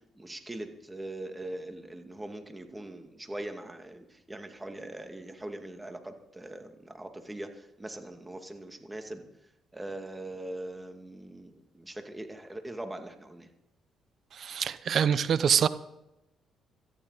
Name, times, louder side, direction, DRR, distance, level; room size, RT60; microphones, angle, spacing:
voice 1, 0.0-9.3 9.7-13.5, right 1 dB, 15° right, 5 dB, 2.3 m, -41 dB
voice 2, 14.4-15.7, right 8 dB, 60° right, 15 dB, 0.8 m, -25 dB
18.0 x 14.0 x 4.1 m, 0.88 s
supercardioid pair, 70°, 0 cm